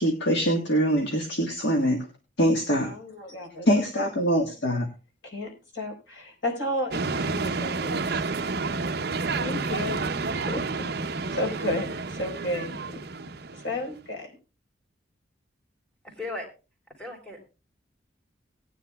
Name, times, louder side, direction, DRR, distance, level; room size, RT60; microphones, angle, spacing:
voice 1, 0.0-2.1 2.4-2.9 3.6-4.9, equal, 65° left, 3 dB, 1.5 m, -23 dB
voice 2, 2.8-3.7 5.2-8.1 9.4-10.1 10.5-10.9 11.2-13.0 13.5-14.3, left 1 dB, 85° left, 2 dB, 4.4 m, -32 dB
sound 1, 6.9-13.9, right 4 dB, 55° right, 0.7 m, -30 dB
voice 3, 16.0-16.5 17.0-17.4, left 2 dB, 5° left, 1 dB, 3.2 m, -36 dB
18.5 x 10.0 x 2.3 m, 0.31 s
head